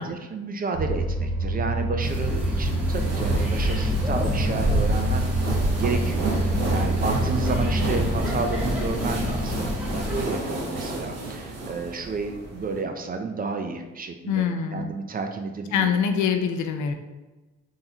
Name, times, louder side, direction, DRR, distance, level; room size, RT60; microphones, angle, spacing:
voice 1, 0.0-5.3 5.8-14.5 14.7-15.9, right 4 dB, 30° right, 5 dB, 0.4 m, -31 dB
sound 1, 0.7-8.1, right 3 dB, 80° right, 0.7 m, -27 dB
sound 2, 2.0-10.3, left 2 dB, 5° right, 1.0 m, -28 dB
sound 3, 2.8-12.8, right 2 dB, 55° right, 0.9 m, -31 dB
voice 2, 14.3-15.0 15.7-16.9, left 7 dB, 75° left, 6 dB, 0.5 m, -24 dB
3.7 x 2.7 x 2.9 m, 1.2 s
cardioid pair, 90°, 30 cm